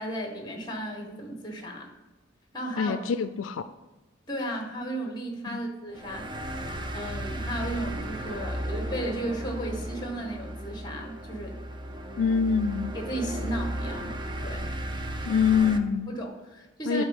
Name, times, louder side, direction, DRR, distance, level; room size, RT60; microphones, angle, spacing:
voice 1, 0.0-1.9 2.5-3.0 4.3-6.3 6.9-11.6 12.9-14.7 16.1-17.0, right 1 dB, 20° left, 3 dB, 1.5 m, -34 dB
voice 2, 2.8-3.6 5.5-5.6 12.2-13.0 15.3-16.1 16.9-17.0, left 6 dB, 80° left, 11 dB, 0.4 m, -25 dB
sound 1, 5.9-15.8, equal, 25° right, 0.6 m, -35 dB
10.5 x 4.1 x 5.2 m, 1.1 s
head